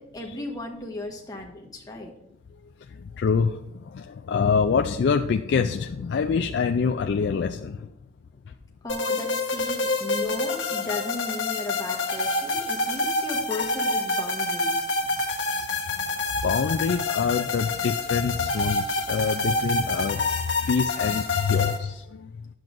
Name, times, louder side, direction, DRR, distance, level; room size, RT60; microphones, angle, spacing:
voice 1, 0.0-2.1 8.8-14.9 21.5-21.6, left 2 dB, 20° left, 0 dB, 1.2 m, -35 dB
voice 2, 3.0-7.9 16.0-16.1 16.4-20.2 20.6-22.3, left 5 dB, 65° left, 7 dB, 0.3 m, -25 dB
sound 1, 8.9-21.8, left 3 dB, 90° left, 1.2 m, -27 dB
10.5 x 7.8 x 2.5 m, 0.83 s
head